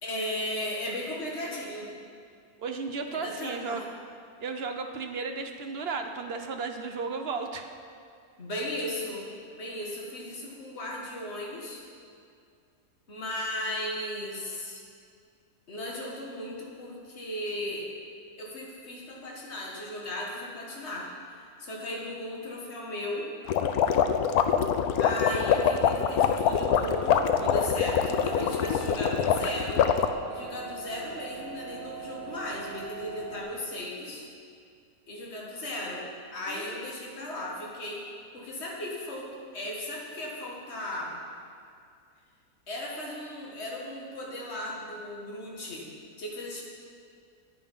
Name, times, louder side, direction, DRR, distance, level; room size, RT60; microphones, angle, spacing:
voice 1, 0.0-1.9 3.1-3.8 8.4-9.3 9.6-11.9 13.1-14.8 15.7-17.9 18.4-23.3 25.0-29.9 30.3-34.2 35.1-36.1 36.3-38.1 38.3-41.1 42.7-45.9 46.2-46.6, left 1 dB, 50° left, -3 dB, 2.0 m, -36 dB
voice 2, 2.6-3.8 4.4-7.7 36.5-36.7, right 4 dB, 50° right, 5 dB, 0.8 m, -34 dB
sound 1, 23.5-30.1, left 8 dB, 80° left, 1.1 m, -24 dB
sound 2, 26.5-33.4, right 4 dB, 35° right, 3.8 m, -41 dB
10.0 x 9.3 x 5.5 m, 2.3 s
omnidirectional pair, 1.5 m